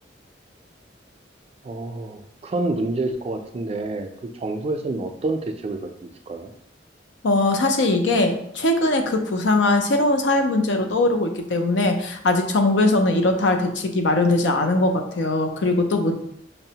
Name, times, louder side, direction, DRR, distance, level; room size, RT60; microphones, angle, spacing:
voice 1, 1.6-6.5, right 2 dB, 35° right, 5 dB, 0.3 m, -28 dB
voice 2, 7.2-16.1, left 2 dB, 85° left, 5 dB, 0.5 m, -20 dB
5.3 x 2.0 x 2.8 m, 0.73 s
head